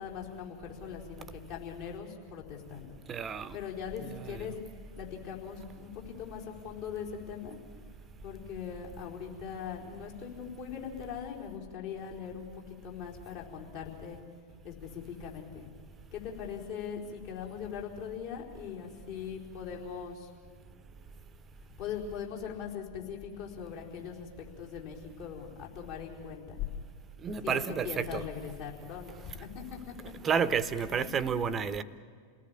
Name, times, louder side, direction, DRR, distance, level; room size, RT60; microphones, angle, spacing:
voice 1, 0.0-3.0 3.5-4.5 4.9-7.6 8.2-14.2 14.6-15.7 16.1-20.3 21.8-26.6 27.4-29.9 30.9-31.3, left 7 dB, 50° left, 4.5 m, -41 dB
voice 2, 3.1-3.6 4.0-4.5 27.2-28.2 30.2-31.8, right 6 dB, 25° right, 1.0 m, -31 dB
28.5 x 18.5 x 8.8 m
figure-of-eight pair, 90°, 0 cm